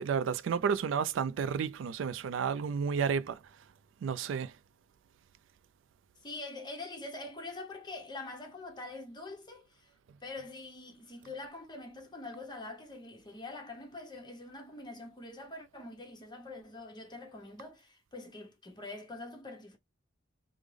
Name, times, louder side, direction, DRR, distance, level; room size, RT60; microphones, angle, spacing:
voice 1, 0.0-3.4 4.0-4.5, right 6 dB, 70° right, 0.3 m, -31 dB
voice 2, 6.2-9.9 10.2-19.8, left 2 dB, 25° left, 0.9 m, -44 dB
3.5 x 2.1 x 3.2 m
head